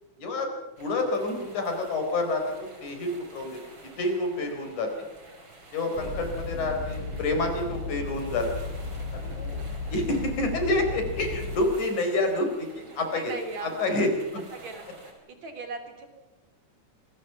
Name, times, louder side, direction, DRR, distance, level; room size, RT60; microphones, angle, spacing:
voice 1, 0.2-0.5 0.8-3.6 4.0-5.1 5.7-8.6 9.4-9.6 9.9-14.4, left 2 dB, 70° left, 4 dB, 5.8 m, -28 dB
sound 1, 0.8-15.1, right 2 dB, 35° right, 5.4 m, -50 dB
sound 2, 5.9-11.6, left 3 dB, 85° left, 9.5 m, -35 dB
voice 2, 5.9-6.2 12.9-14.0 14.5-14.9 15.4-16.1, right 4 dB, 60° right, 5 dB, 4.3 m, -39 dB
26.5 x 21.5 x 5.9 m, 1.1 s
omnidirectional pair, 3.6 m